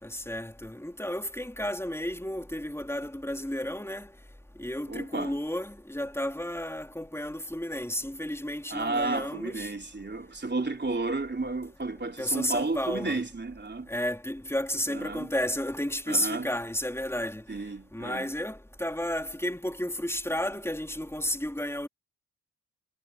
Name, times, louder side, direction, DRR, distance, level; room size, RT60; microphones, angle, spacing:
voice 1, 0.0-4.1 4.6-9.7 12.2-13.2 13.9-17.4 17.9-21.9, left 1 dB, 5° left, 4.0 m, -32 dB
voice 2, 4.9-5.4 8.7-13.9 14.9-15.3 16.1-16.5 17.5-18.3, right 3 dB, 25° right, 3.6 m, -32 dB
supercardioid pair, 45°, 38 cm